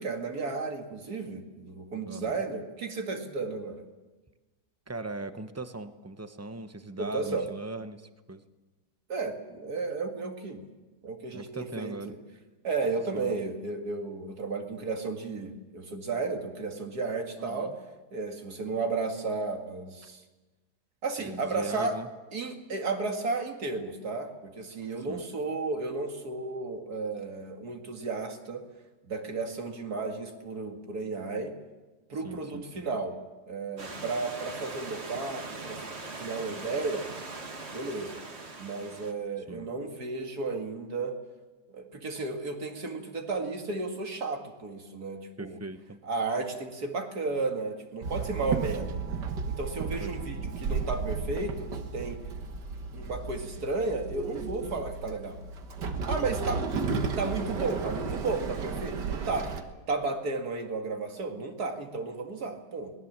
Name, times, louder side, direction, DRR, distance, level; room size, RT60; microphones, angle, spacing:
voice 1, 0.0-3.8 7.0-7.5 9.1-10.6 11.0-12.2 12.6-17.7 18.1-20.2 21.0-22.0 22.3-28.7 29.1-31.5 32.1-33.2 33.5-35.8 36.1-37.0 37.7-38.2 38.6-41.2 41.7-45.6 46.0-49.0 49.5-52.2 52.9-55.4 56.1-59.6 59.9-62.9, right 3 dB, 65° right, 4 dB, 2.6 m, -33 dB
voice 2, 2.1-2.4 4.9-8.4 11.3-12.1 13.1-13.3 17.4-17.7 21.2-22.1 25.0-25.2 32.2-32.9 39.4-39.7 45.4-46.0 50.0-50.5, right 2 dB, 15° right, 9 dB, 0.5 m, -40 dB
Stream / Liquid, 33.8-39.1, right 3 dB, 40° right, 1.9 m, -41 dB
Walk footsteps / Chatter / Hiss, 48.0-59.6, right 5 dB, 85° right, 2.0 m, -34 dB
23.5 x 19.5 x 7.4 m, 1.2 s
omnidirectional pair, 1.8 m